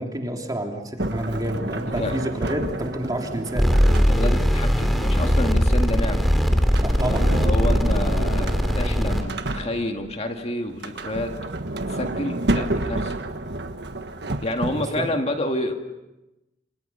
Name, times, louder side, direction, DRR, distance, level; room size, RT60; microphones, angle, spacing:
voice 1, 0.0-3.7 6.8-7.3 14.7-15.1, right 1 dB, 20° right, 2 dB, 3.2 m, -29 dB
Sliding door, 1.0-4.5 6.6-10.1 10.7-15.1, right 1 dB, 65° right, 1.5 m, -30 dB
sound 1, 3.5-9.2, equal, ahead, 3.0 m, -20 dB
voice 2, 3.9-6.3 7.1-11.3 11.9-13.1 14.4-15.7, left 1 dB, 35° left, 4 dB, 2.1 m, -29 dB
29.0 x 27.0 x 5.7 m, 0.97 s
head